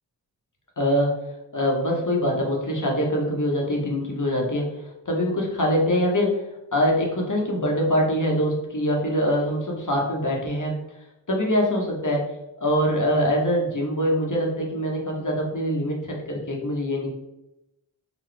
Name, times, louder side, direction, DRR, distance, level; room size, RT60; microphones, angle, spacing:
voice 1, 0.8-1.1 1.5-4.7 5.1-6.4 6.7-10.7 11.3-12.3 12.6-17.1, equal, 40° left, -1 dB, 1.0 m, -23 dB
3.9 x 2.2 x 3.3 m, 0.91 s
cardioid pair, 45°, 48 cm